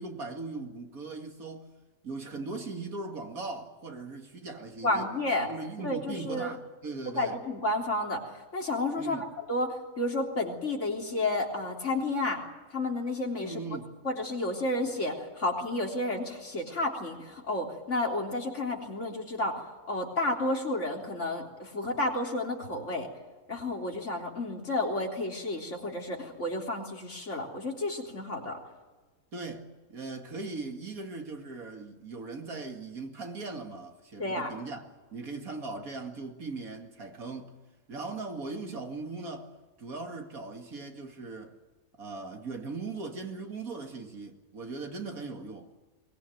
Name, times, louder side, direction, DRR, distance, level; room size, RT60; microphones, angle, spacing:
voice 1, 0.0-1.7 2.0-5.1 5.5-7.4 9.0-9.3 13.4-14.0 29.3-34.8 35.1-37.5 37.9-39.5 39.8-41.6 42.0-45.7, right 3 dB, 85° right, 2.7 m, -39 dB
voice 2, 4.8-5.5 5.8-6.5 7.1-8.2 8.5-9.2 9.5-12.4 12.7-13.6 14.0-19.6 19.9-23.1 23.5-28.6 34.2-34.5, left 2 dB, 55° left, 3.9 m, -31 dB
22.5 x 19.5 x 9.2 m
omnidirectional pair, 1.5 m